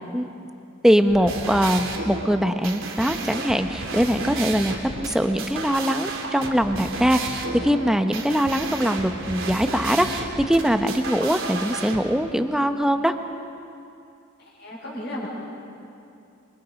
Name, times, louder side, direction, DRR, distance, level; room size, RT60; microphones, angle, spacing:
voice 1, 0.8-13.1, equal, 5° right, 7 dB, 0.9 m, -22 dB
sound 1, 1.0-12.0, right 3 dB, 90° right, 2.7 m, -32 dB
voice 2, 14.4-15.3, left 1 dB, 60° left, -9 dB, 5.7 m, -34 dB
26.0 x 24.0 x 5.2 m, 2.6 s
head